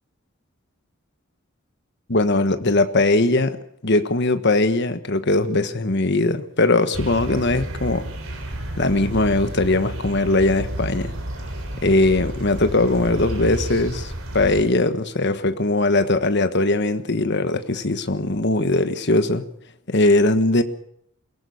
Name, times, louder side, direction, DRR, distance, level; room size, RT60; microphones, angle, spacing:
voice 1, 2.1-3.6 3.8-8.1 8.8-11.1 11.8-19.4 19.9-20.6, left 2 dB, 55° left, 1.4 m, -20 dB
sound 1, 6.9-14.6, right 1 dB, 90° right, 3.8 m, -31 dB
22.0 x 17.5 x 7.0 m
head